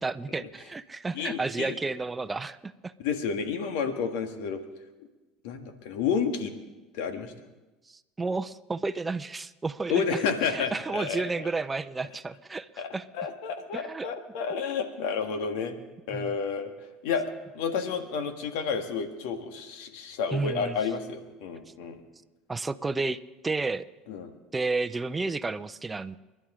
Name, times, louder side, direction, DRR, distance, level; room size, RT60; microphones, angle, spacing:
voice 1, 0.0-2.9 7.9-13.0 13.7-14.1 16.1-16.4 20.3-20.8 22.5-23.9 24.5-26.2, right 3 dB, 20° right, 12 dB, 0.7 m, -32 dB
voice 2, 1.1-1.8 3.0-4.6 5.4-6.5 6.9-7.3 9.9-11.5 12.8-12.9 13.1-15.8 16.1-16.7 17.0-17.3 17.5-22.0 24.1-24.3, left 6 dB, 75° left, 7 dB, 1.7 m, -30 dB
29.0 x 11.5 x 3.8 m, 1.1 s
supercardioid pair, 90°, 0 cm